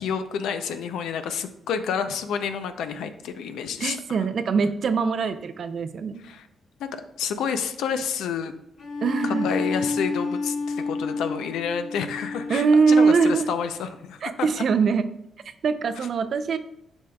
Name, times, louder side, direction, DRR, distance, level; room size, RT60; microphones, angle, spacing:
voice 1, 0.0-4.2 6.2-6.5 6.8-8.5 9.2-14.5, left 7 dB, 85° left, 9 dB, 0.5 m, -29 dB
voice 2, 3.8-6.2 9.0-9.5 12.5-13.5 14.2-15.1 15.6-16.6, right 5 dB, 60° right, 11 dB, 0.5 m, -22 dB
Bowed string instrument, 8.8-13.5, left 3 dB, 65° left, 1.2 m, -30 dB
8.0 x 5.3 x 2.3 m, 0.81 s
cardioid pair, 75°, 0 cm